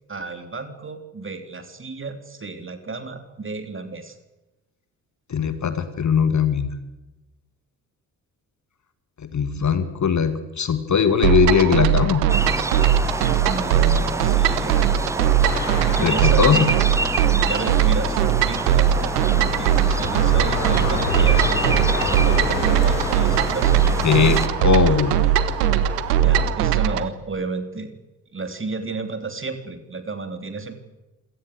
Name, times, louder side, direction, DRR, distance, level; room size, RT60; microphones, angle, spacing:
voice 1, 0.1-4.1 13.4-15.1 15.9-16.7 17.4-25.0 26.2-28.0 28.3-30.7, right 3 dB, 25° right, 8 dB, 3.3 m, -32 dB
voice 2, 5.3-6.7 9.3-12.2 16.0-16.6 24.0-25.2, left 7 dB, 35° left, 11 dB, 2.1 m, -20 dB
sound 1, 11.2-27.1, right 10 dB, 70° right, 1.2 m, -20 dB
sound 2, 12.3-24.5, right 2 dB, 5° right, 0.9 m, -28 dB
sound 3, 15.4-26.5, left 3 dB, 80° left, 3.5 m, -31 dB
27.0 x 18.0 x 8.1 m, 1.0 s
figure-of-eight pair, 45°, 49 cm